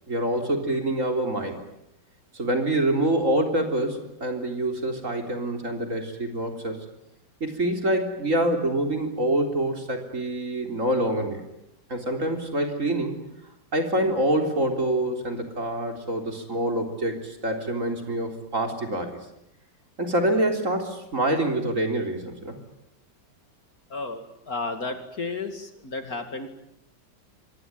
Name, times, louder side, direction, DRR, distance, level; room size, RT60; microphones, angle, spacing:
voice 1, 0.1-1.6 2.3-6.8 7.4-11.4 11.9-13.1 13.7-19.2 20.0-22.6, right 1 dB, 40° right, 4 dB, 4.0 m, -26 dB
voice 2, 23.9-26.5, left 3 dB, 50° left, 7 dB, 2.8 m, -33 dB
25.0 x 22.5 x 9.6 m, 0.83 s
omnidirectional pair, 2.0 m